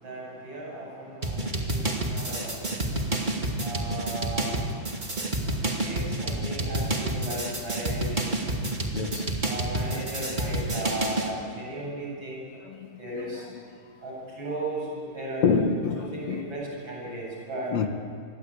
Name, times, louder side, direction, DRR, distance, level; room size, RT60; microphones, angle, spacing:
voice 1, 0.0-2.9 3.6-4.7 5.8-8.5 9.5-12.4 13.0-13.5 14.0-15.4 16.0-17.7, right 1 dB, 35° right, 8.8 m, -36 dB
sound 1, 1.2-11.3, right 2 dB, 15° right, 1.9 m, -29 dB
voice 2, 8.9-9.3 12.7-12.9 13.2-13.6 15.4-16.5 17.7-17.9, left 5 dB, 60° left, 2.6 m, -27 dB
27.0 x 23.5 x 8.7 m
omnidirectional pair, 3.8 m